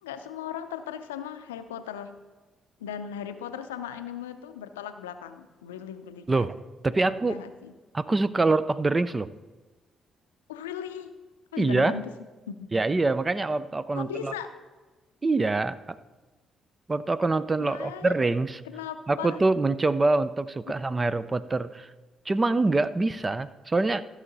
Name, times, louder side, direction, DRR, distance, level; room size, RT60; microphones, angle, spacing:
voice 1, 0.0-2.1 2.8-6.5 7.3-7.7 10.5-11.1 11.5-12.1 12.5-12.7 13.9-14.5 17.6-18.1 18.7-19.4 20.7-20.8, left 9 dB, 90° left, 10 dB, 0.5 m, -37 dB
voice 2, 6.8-7.4 7.9-9.3 11.6-12.0 12.7-14.3 15.2-15.8 16.9-18.6 19.1-21.9 22.3-24.0, right 3 dB, 30° right, 15 dB, 0.5 m, -25 dB
14.5 x 6.3 x 4.0 m, 1.2 s
hypercardioid pair, 45°, 0 cm